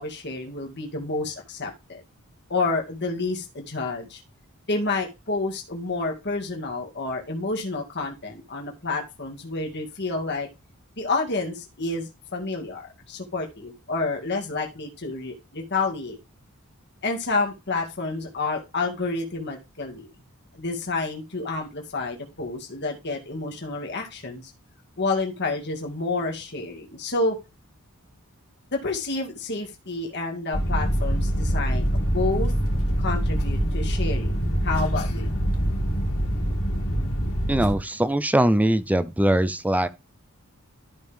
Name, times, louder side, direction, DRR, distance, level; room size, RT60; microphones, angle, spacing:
voice 1, 0.0-2.0 2.5-4.2 4.7-10.5 11.0-16.2 17.0-20.1 20.5-24.5 25.0-27.4 28.7-32.5 33.0-35.3, left 3 dB, 50° left, 2.1 m, -29 dB
sound 1, 30.5-37.7, equal, 80° left, 2.9 m, -24 dB
voice 2, 37.5-39.9, right 1 dB, 5° right, 0.6 m, -21 dB
12.5 x 5.4 x 3.5 m
head